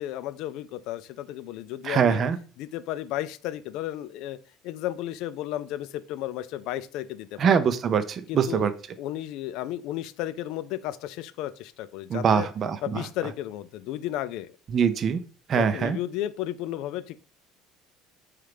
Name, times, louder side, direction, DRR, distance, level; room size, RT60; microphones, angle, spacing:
voice 1, 0.0-2.2 2.6-4.4 4.6-7.6 8.3-8.7 9.0-12.5 12.8-14.6 15.5-17.2, left 13 dB, 65° left, 14 dB, 0.3 m, -33 dB
voice 2, 1.8-2.4 7.4-8.7 12.1-13.0 14.7-15.2 15.5-16.0, right 7 dB, 45° right, 11 dB, 0.5 m, -23 dB
3.7 x 3.2 x 3.3 m, 0.37 s
hypercardioid pair, 65°, 0 cm